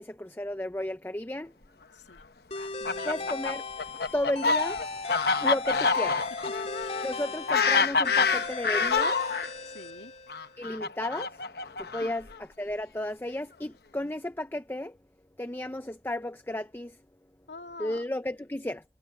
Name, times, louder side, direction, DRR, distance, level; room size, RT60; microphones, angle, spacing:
voice 1, 0.0-1.5 3.0-3.6 4.1-4.8 5.4-6.3 7.0-9.3 10.6-11.4 11.8-15.0 15.4-17.0 17.8-18.8, left 1 dB, 10° left, 0.5 m, -33 dB
voice 2, 1.9-2.2 2.8-3.3 5.0-5.3 6.8-7.1 9.6-10.2 12.0-12.1 17.5-18.0, left 3 dB, 80° left, 2.3 m, -47 dB
sound 1, 2.5-10.6, left 3 dB, 35° left, 2.8 m, -38 dB
Fowl, 2.6-9.5 10.3-12.3, left 4 dB, 60° left, 1.0 m, -27 dB
head